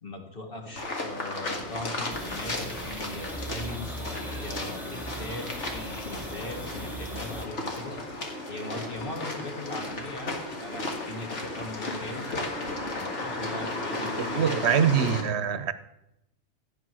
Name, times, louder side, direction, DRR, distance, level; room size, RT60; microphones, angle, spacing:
voice 1, 0.0-12.3 12.9-14.6, left 2 dB, 50° left, 2.2 m, -40 dB
sound 1, 0.8-15.2, left 2 dB, 75° left, 2.3 m, -34 dB
sound 2, 2.1-7.5, right 1 dB, ahead, 1.2 m, -39 dB
voice 2, 14.2-15.7, right 8 dB, 65° right, 1.0 m, -24 dB
14.0 x 8.9 x 6.2 m
omnidirectional pair, 1.2 m